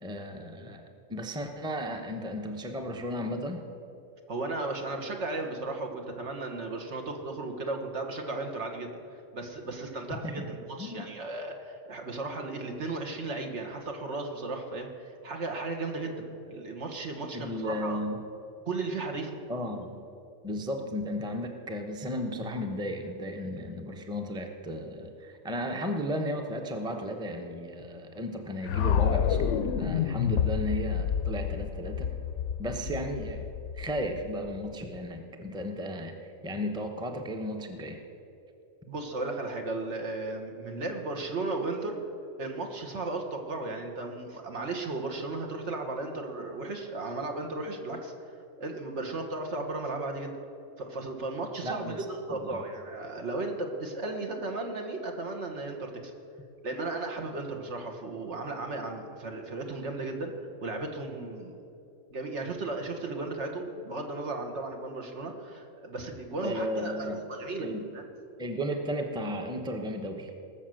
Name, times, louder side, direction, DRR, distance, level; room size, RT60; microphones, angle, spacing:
voice 1, 0.0-3.6 10.2-10.5 10.8-11.1 17.3-18.2 19.5-20.0 20.4-32.1 32.6-33.4 33.7-36.1 36.4-38.0 51.6-52.0 52.3-52.6 66.4-67.2 67.6-67.8 68.4-70.3, equal, 5° right, 4 dB, 0.8 m, -34 dB
voice 2, 4.3-9.0 9.3-18.0 18.6-19.3 32.8-32.9 38.9-42.0 42.4-48.1 48.6-50.4 50.8-56.1 56.6-60.3 60.6-61.6 62.1-67.7 67.9-68.0, right 2 dB, 65° right, 3 dB, 1.7 m, -35 dB
sound 1, 28.6-34.7, left 8 dB, 75° left, 0.9 m, -29 dB
19.0 x 6.5 x 7.7 m, 2.7 s
omnidirectional pair, 1.3 m